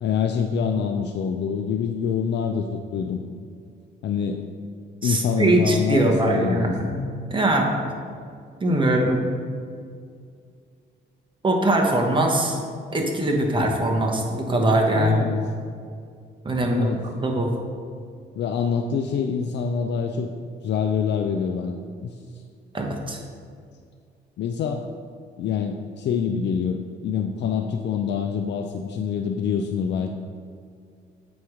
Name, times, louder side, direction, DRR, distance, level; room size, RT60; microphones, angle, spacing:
voice 1, 0.0-3.2 4.0-4.4 5.0-6.8 14.9-15.4 16.7-17.0 18.4-20.3 20.6-22.2 24.4-24.9 25.4-30.2, left 6 dB, 60° left, 4 dB, 0.4 m, -26 dB
voice 2, 5.0-7.7 8.6-9.2 11.4-12.6 12.9-15.2 16.4-16.9 17.2-17.5 22.7-23.2, right 1 dB, 25° right, 1 dB, 1.0 m, -21 dB
8.1 x 3.1 x 4.8 m, 2.2 s
cardioid pair, 90°, 20 cm